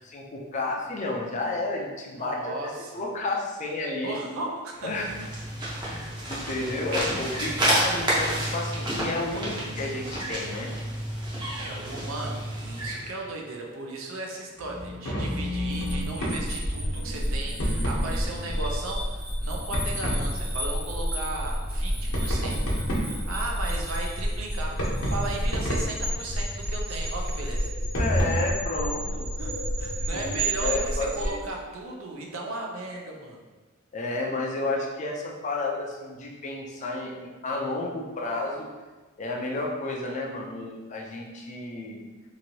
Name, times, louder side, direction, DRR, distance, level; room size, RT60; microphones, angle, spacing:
voice 1, 0.0-4.1 4.8-5.1 5.8-10.7 17.5-18.0 28.0-29.3 30.1-31.4 33.9-38.7 39.2-42.0, left 2 dB, 35° left, 0 dB, 0.4 m, -31 dB
voice 2, 2.2-3.0 4.0-4.9 6.3-6.5 11.6-22.6 23.0-27.7 29.4-33.4, right 2 dB, 75° right, 0 dB, 0.5 m, -36 dB
sound 1, 4.8-13.1, right 1 dB, 20° right, 0.7 m, -30 dB
sound 2, 14.6-16.4 17.6-18.1 19.7-20.2 22.1-23.3 24.7-26.0 27.9-28.3, equal, 90° left, 0.9 m, -29 dB
sound 3, 15.6-31.3, equal, 50° right, 1.1 m, -30 dB
2.9 x 2.6 x 2.7 m, 1.3 s
head